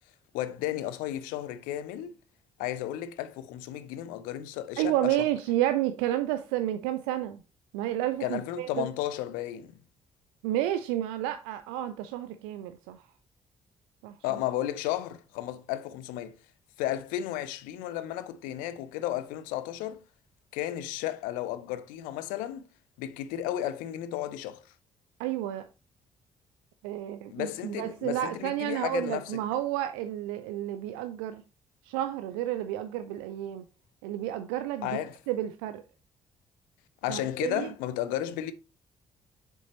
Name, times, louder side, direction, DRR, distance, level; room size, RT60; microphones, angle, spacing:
voice 1, 0.3-2.1 2.6-5.2 8.2-9.7 14.2-16.4 16.8-20.0 20.5-22.7 23.0-24.6 27.3-29.4 34.8-35.2 37.0-38.5, left 13 dB, 65° left, 0.6 m, -33 dB
voice 2, 4.8-7.4 7.7-8.9 10.4-13.0 14.0-14.2 25.2-25.6 26.8-31.4 31.9-33.6 34.0-35.8 37.1-37.7, right 13 dB, 65° right, 0.5 m, -31 dB
7.0 x 6.9 x 3.0 m
figure-of-eight pair, 45°, 15 cm